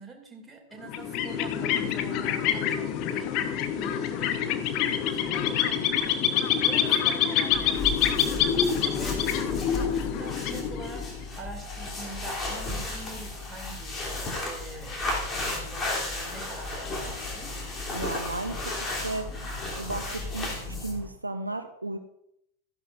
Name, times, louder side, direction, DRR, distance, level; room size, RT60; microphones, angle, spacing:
voice 1, 0.0-11.1 11.4-17.6, right 3 dB, 10° right, 1 dB, 2.4 m, -45 dB
sound 1, 0.8-11.2, left 9 dB, 40° left, 0.8 m, -26 dB
sound 2, 7.5-21.1, left 2 dB, 20° left, 2.9 m, -34 dB
voice 2, 17.9-19.3 19.8-22.0, right 2 dB, 80° right, 8 dB, 0.7 m, -34 dB
14.0 x 11.0 x 2.5 m, 0.79 s
figure-of-eight pair, 90°, 0 cm